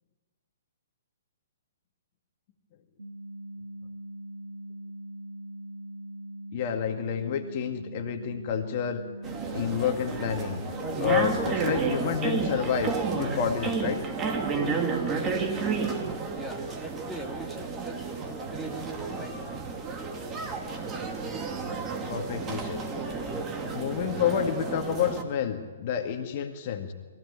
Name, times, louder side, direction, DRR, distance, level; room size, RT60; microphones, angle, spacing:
sound 1, 3.0-13.0, right 1 dB, 75° right, 2.9 m, -41 dB
voice 1, 6.5-9.0 9.5-10.6 11.0-14.0 22.1-22.8 23.7-26.9, left 8 dB, 45° left, 5 dB, 2.0 m, -29 dB
sound 2, 9.2-25.2, right 4 dB, 20° right, 2.6 m, -31 dB
voice 2, 16.3-18.0 18.4-19.4, right 1 dB, 5° right, 2 dB, 2.6 m, -41 dB
22.5 x 16.0 x 9.9 m, 1.5 s
figure-of-eight pair, 125°, 0 cm